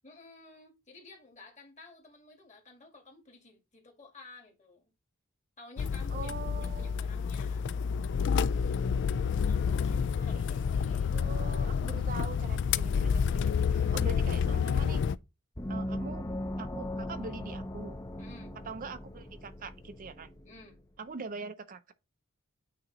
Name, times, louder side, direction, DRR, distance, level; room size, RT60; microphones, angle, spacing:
voice 1, 0.0-4.8 5.6-7.7 9.5-11.1 18.2-18.5 20.4-20.8, left 3 dB, 35° left, 1.9 m, -53 dB
sound 1, 5.8-15.2, left 6 dB, 55° left, 0.3 m, -29 dB
voice 2, 6.1-7.0 10.2-10.4 10.9-15.0 15.7-16.2 16.6-18.0 18.6-20.3 21.0-21.9, right 4 dB, 40° right, 0.5 m, -43 dB
Gong, 15.6-20.8, left 1 dB, 15° left, 0.6 m, -39 dB
8.8 x 2.9 x 3.8 m
head